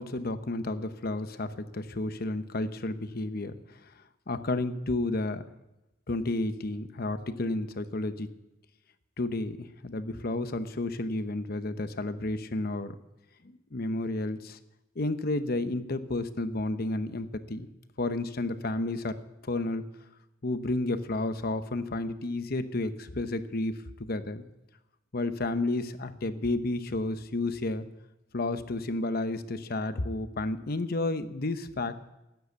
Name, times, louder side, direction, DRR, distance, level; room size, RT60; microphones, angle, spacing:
voice 1, 0.0-3.9 4.3-5.4 6.1-8.3 9.2-13.0 13.4-14.6 15.0-17.7 18.0-19.2 19.4-19.8 20.4-24.4 25.1-27.8 28.3-31.9, left 2 dB, 55° left, 11 dB, 0.9 m, -31 dB
13.0 x 9.4 x 8.2 m, 0.94 s
head